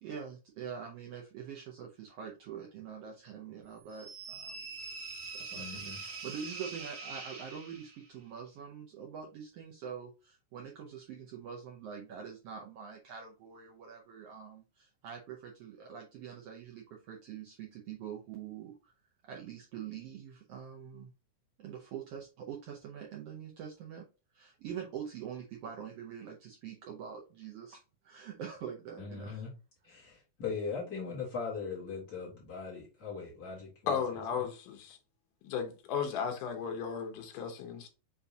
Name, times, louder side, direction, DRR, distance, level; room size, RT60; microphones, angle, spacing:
voice 1, 0.0-4.6 5.3-18.9 19.2-21.1 21.6-24.1 24.3-29.4, right 8 dB, 85° right, 1.3 m, -45 dB
sound 1, 3.9-8.1, right 4 dB, 65° right, 1.1 m, -43 dB
voice 2, 5.5-6.0 29.0-29.5 29.8-33.7, left 5 dB, 40° left, 1.5 m, -39 dB
voice 3, 33.9-35.0 35.4-37.9, left 7 dB, 85° left, 2.4 m, -35 dB
6.7 x 2.7 x 2.7 m
omnidirectional pair, 3.6 m